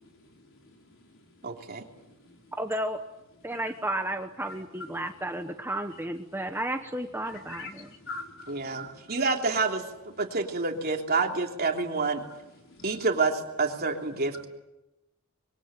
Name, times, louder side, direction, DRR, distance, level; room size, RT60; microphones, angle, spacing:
voice 1, 0.0-2.5 4.5-4.6 7.3-9.1 12.3-13.0, left 3 dB, 60° left, 2 dB, 4.9 m, -46 dB
voice 2, 1.4-1.8 8.5-9.9 10.2-12.2 12.8-14.5, right 4 dB, 45° right, 2 dB, 3.3 m, -28 dB
voice 3, 2.6-3.0 3.4-7.9, right 1 dB, 10° right, 6 dB, 1.1 m, -32 dB
26.0 x 23.0 x 9.0 m, 0.96 s
head